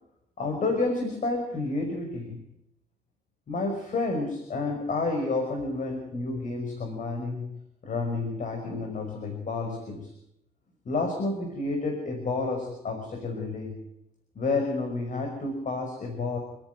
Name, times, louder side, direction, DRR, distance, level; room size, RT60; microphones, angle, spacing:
voice 1, 0.4-2.4 3.5-10.1 10.9-13.8 14.4-16.4, left 3 dB, 50° left, 4 dB, 5.6 m, -30 dB
28.0 x 10.5 x 9.4 m, 0.82 s
cardioid pair, 90°, 17 cm